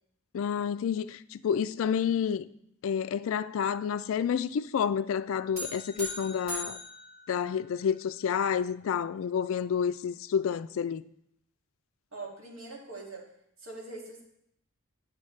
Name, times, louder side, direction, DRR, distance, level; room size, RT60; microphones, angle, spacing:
voice 1, 0.3-2.4 2.8-6.8 7.3-11.0, left 7 dB, 65° left, 0.3 m, -29 dB
sound 1, 5.6-8.0, equal, 45° right, 2.9 m, -40 dB
voice 2, 12.1-13.3 13.6-14.2, right 3 dB, 70° right, 2.2 m, -42 dB
9.7 x 6.3 x 3.2 m
head